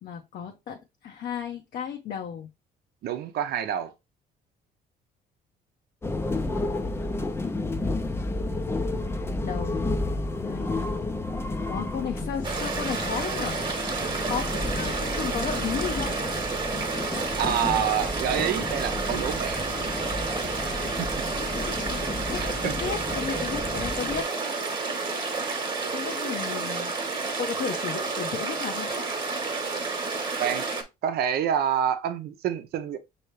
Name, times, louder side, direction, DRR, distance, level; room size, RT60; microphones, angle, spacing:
voice 1, 0.0-2.5 9.4-11.2 11.7-13.6 14.3-16.2 21.3-24.3 25.8-29.0, left 7 dB, 55° left, 0.8 m, -34 dB
voice 2, 3.0-3.9 17.4-19.7 20.6-21.1 22.4-22.7 30.4-30.7 31.0-33.0, right 9 dB, 70° right, 0.7 m, -28 dB
sound 1, 6.0-24.2, left 2 dB, 15° left, 0.5 m, -31 dB
sound 2, 12.4-30.8, right 4 dB, 25° right, 1.2 m, -30 dB
5.5 x 2.9 x 3.2 m
cardioid pair, 110°, 17 cm